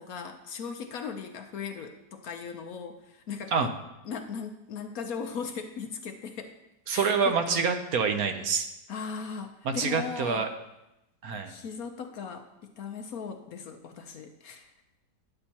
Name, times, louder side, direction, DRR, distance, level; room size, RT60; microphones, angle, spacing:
voice 1, 0.0-3.7 4.0-6.6 6.9-7.6 8.9-10.5 11.5-14.7, left 6 dB, 60° left, 6 dB, 1.1 m, -38 dB
voice 2, 6.9-8.7 9.6-10.5 11.2-11.5, right 5 dB, 60° right, 6 dB, 1.1 m, -26 dB
11.5 x 10.0 x 2.9 m, 0.91 s
omnidirectional pair, 1.9 m